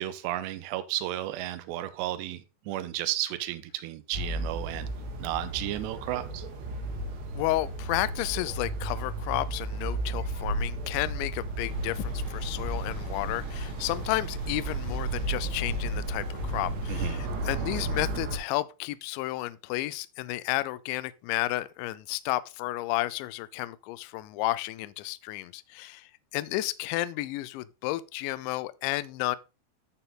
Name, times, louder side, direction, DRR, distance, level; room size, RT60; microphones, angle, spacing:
voice 1, 0.0-4.9 5.2-6.5 16.9-17.3, right 14 dB, 85° right, 2.5 m, -33 dB
sound 1, 4.1-18.4, right 1 dB, 65° right, 3.5 m, -34 dB
voice 2, 7.3-29.4, left 17 dB, 85° left, 2.7 m, -32 dB
sound 2, 11.6-18.2, right 3 dB, 30° right, 2.3 m, -39 dB
13.5 x 4.5 x 3.8 m
omnidirectional pair, 5.6 m